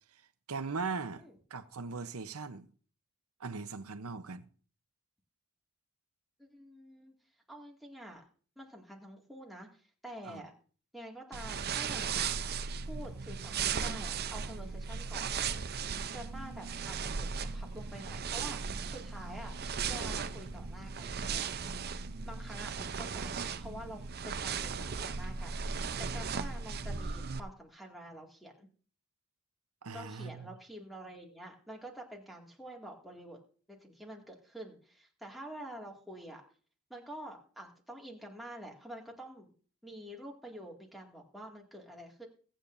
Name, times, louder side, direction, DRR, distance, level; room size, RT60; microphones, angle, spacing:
voice 1, 0.5-2.7 3.4-4.5 10.2-10.4 29.8-30.5, right 4 dB, 70° right, 0.8 m, -39 dB
voice 2, 6.4-7.1 7.5-8.2 8.6-10.5 10.9-12.3 12.9-15.3 16.1-19.5 19.9-21.5 22.2-25.6 26.0-28.7 29.9-33.4 33.7-36.4 36.9-39.5 39.8-42.3, right 1 dB, ahead, 2.1 m, -47 dB
sound 1, 11.3-27.4, right 6 dB, 45° right, 0.6 m, -37 dB
21.5 x 8.9 x 2.6 m
head